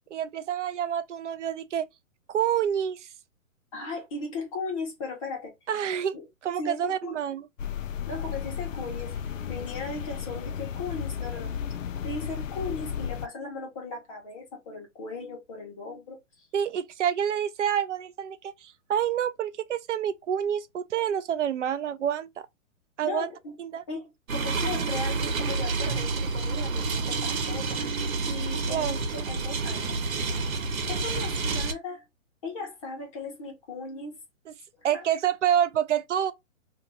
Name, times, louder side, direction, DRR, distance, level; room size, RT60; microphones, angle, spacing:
voice 1, 0.1-1.9 2.3-3.1 5.7-6.2 6.4-7.5 16.5-22.3 23.0-23.3 23.6-23.8 28.7-29.0 34.5-34.6 34.8-36.3, right 9 dB, 60° right, 0.5 m, -28 dB
voice 2, 3.7-5.5 6.1-6.2 6.6-7.2 8.1-11.5 12.0-16.5 23.0-23.6 23.9-27.8 28.3-29.8 30.9-32.0 32.4-34.2 34.9-35.0, left 3 dB, 25° left, 1.1 m, -37 dB
sound 1, 7.6-13.3, left 8 dB, 65° left, 0.6 m, -34 dB
sound 2, 24.3-31.7, right 4 dB, 80° right, 1.1 m, -29 dB
2.9 x 2.6 x 3.8 m
hypercardioid pair, 170°, 41 cm